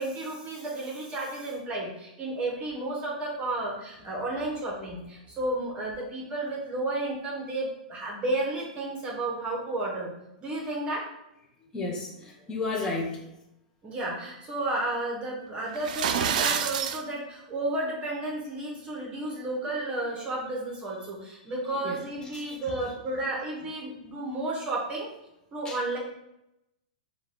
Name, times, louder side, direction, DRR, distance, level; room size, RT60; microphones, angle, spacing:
voice 1, 0.0-10.1 10.4-11.0 13.8-25.1 25.5-26.0, right 2 dB, 25° right, -2 dB, 1.0 m, -32 dB
voice 2, 11.7-13.2 19.0-19.1 21.8-22.0 22.5-22.6 25.6-25.8, left 3 dB, 15° left, -3 dB, 0.7 m, -32 dB
sound 1, 15.7-17.0, right 8 dB, 65° right, 0.4 m, -27 dB
4.5 x 2.3 x 3.6 m, 0.85 s
hypercardioid pair, 130°, 4 cm